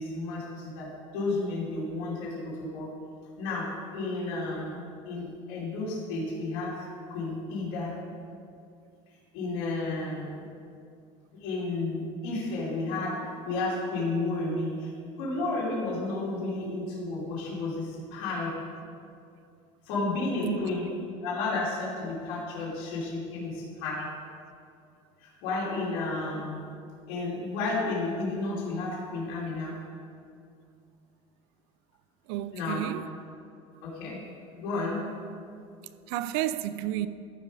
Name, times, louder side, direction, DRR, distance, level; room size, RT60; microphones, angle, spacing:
voice 1, 0.0-2.9 3.4-8.0 9.3-10.4 11.4-14.9 15.2-18.6 19.8-24.2 25.2-26.6 27.1-29.9 32.5-32.9 33.8-34.3 34.6-35.1, left 2 dB, 75° left, 2.7 m, -32 dB
voice 2, 32.3-33.1 36.1-37.1, right 13 dB, 85° right, 0.4 m, -31 dB
14.0 x 5.1 x 4.8 m
cardioid pair, 140°, 14 cm